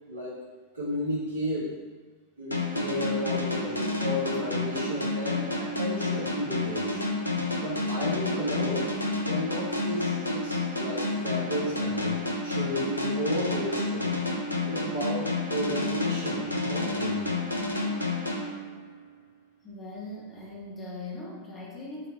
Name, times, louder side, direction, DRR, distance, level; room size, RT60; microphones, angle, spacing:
voice 1, 0.1-0.4 0.7-1.8 2.4-7.0 7.6-9.0 9.2-14.2 14.7-17.4, equal, 70° right, -6 dB, 1.4 m, -33 dB
sound 1, 2.5-19.1, left 2 dB, 85° left, 0.5 m, -30 dB
voice 2, 19.6-22.1, left 2 dB, 15° left, -4 dB, 1.0 m, -40 dB
4.0 x 2.8 x 4.0 m, 1.3 s
figure-of-eight pair, 90°, 0 cm